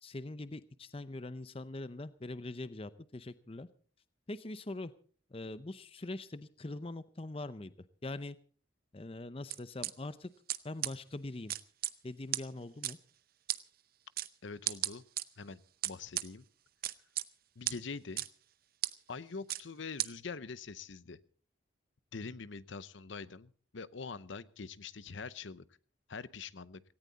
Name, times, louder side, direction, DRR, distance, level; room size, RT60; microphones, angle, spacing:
voice 1, 0.0-3.7 4.3-4.9 5.3-8.4 8.9-10.3 10.6-11.6 12.0-13.0, left 2 dB, 25° left, 14 dB, 0.6 m, -43 dB
sound 1, 9.5-9.9 10.5-10.6 10.8-10.9 11.5-11.9 12.3-12.4 12.8-12.9 13.5-13.6 14.2-14.3 14.7-15.2 15.8-16.3 16.8-17.3 17.7-17.8 18.2-18.3 18.8-18.9 19.5-19.6 20.0-20.1, right 14 dB, 45° right, 0.7 m, -33 dB
voice 2, 14.4-15.0 15.4-16.4 17.6-18.3 19.1-21.2 22.1-25.7 26.1-26.8, left 4 dB, 65° left, 16 dB, 0.7 m, -44 dB
18.0 x 17.5 x 4.0 m, 0.43 s
head